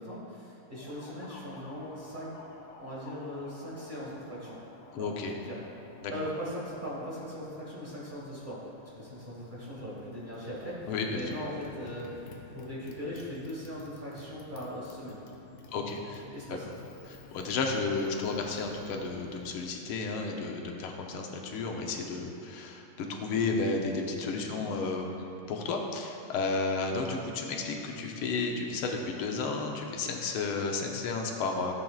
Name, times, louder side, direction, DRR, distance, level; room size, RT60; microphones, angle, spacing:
voice 1, 0.0-2.4 2.8-4.6 5.0-5.6 6.1-8.6 9.0-15.2 16.3-16.7 24.5-24.6, equal, 25° right, -7 dB, 1.4 m, -40 dB
Motorcycle, 0.7-19.7, left 3 dB, 70° left, 1.4 m, -52 dB
voice 2, 4.9-5.3 6.0-6.1 10.9-11.2 15.7-16.2 16.5-16.6 17.0-31.7, left 4 dB, 85° left, 2 dB, 1.7 m, -32 dB
13.5 x 7.4 x 2.4 m, 2.9 s
omnidirectional pair, 2.3 m